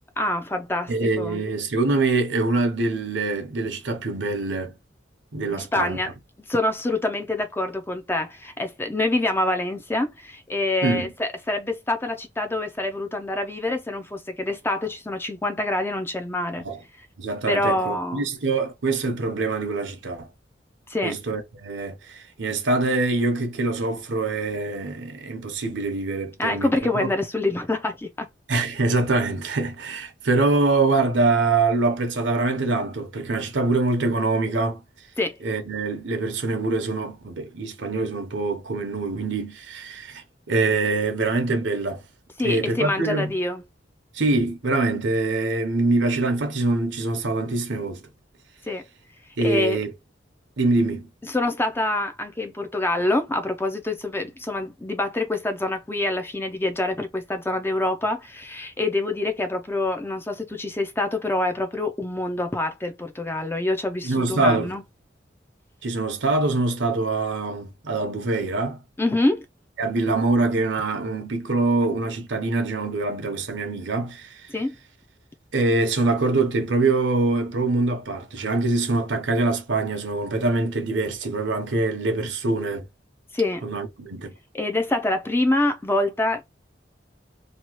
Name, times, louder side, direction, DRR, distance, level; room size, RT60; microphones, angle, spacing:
voice 1, 0.2-0.9 1.2-1.4 5.6-6.1 6.5-16.6 17.5-18.3 20.9-21.2 26.4-28.3 35.2-35.4 42.4-43.6 48.7-48.8 49.4-49.8 51.2-64.8 69.0-69.5 74.5-74.7 83.3-83.6 84.5-86.4, left 2 dB, 10° left, 0.4 m, -26 dB
voice 2, 0.9-4.8 5.3-6.0 10.8-11.1 16.6-16.8 17.2-20.3 21.0-27.1 28.5-34.8 35.4-42.0 42.4-43.3 44.1-48.1 49.4-49.9 50.6-51.1 64.0-64.7 65.8-68.8 69.8-74.4 75.5-82.9 83.6-84.3, right 3 dB, 75° right, 0.8 m, -24 dB
2.8 x 2.3 x 2.9 m
head